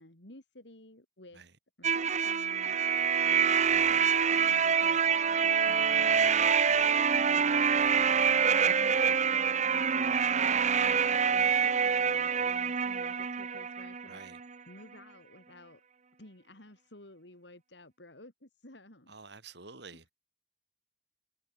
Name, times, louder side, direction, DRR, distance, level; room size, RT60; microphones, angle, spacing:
voice 1, 0.0-1.4 1.8-8.4 8.7-14.2 14.7-15.8 16.2-19.2, left 1 dB, 70° left, 4.2 m, -53 dB
sound 1, 1.8-14.5, right 7 dB, 40° right, 0.8 m, -26 dB
voice 2, 14.1-14.4 19.1-20.1, right 4 dB, 70° right, 3.1 m, -49 dB
head